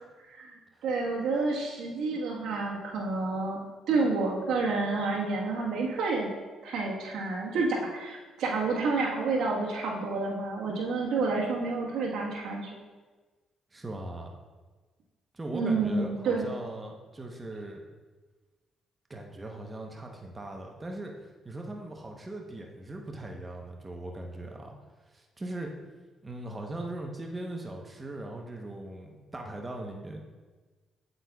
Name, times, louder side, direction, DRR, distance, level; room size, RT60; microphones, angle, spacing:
voice 1, 0.8-3.6 3.9-6.3 6.6-12.8 15.5-16.5, right 3 dB, 80° right, -2 dB, 1.3 m, -29 dB
voice 2, 13.7-14.4 15.3-17.8 19.1-21.1 21.4-24.7 25.1-25.7 26.2-30.2, right 1 dB, 20° right, 1 dB, 0.9 m, -39 dB
8.1 x 7.8 x 2.3 m, 1.3 s
cardioid pair, 90°, 0 cm